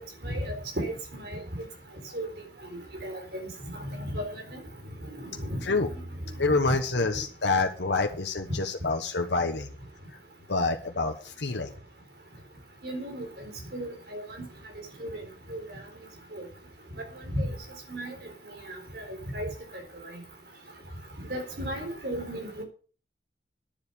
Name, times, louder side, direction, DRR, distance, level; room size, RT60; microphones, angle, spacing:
voice 1, 0.2-0.9 1.2-1.4 2.1-2.3 3.0-4.6 5.2-5.6 5.9-6.0 12.8-14.4 15.0-15.1 15.5-15.8 16.3-16.4 17.3-17.5 17.9-18.1 18.7-19.5 21.2-22.6, equal, 65° right, 3 dB, 4.0 m, -34 dB
voice 2, 6.4-9.7 10.1-10.2 10.5-11.7, left 3 dB, 85° left, 4 dB, 1.2 m, -27 dB
10.5 x 7.4 x 6.8 m, 0.40 s
head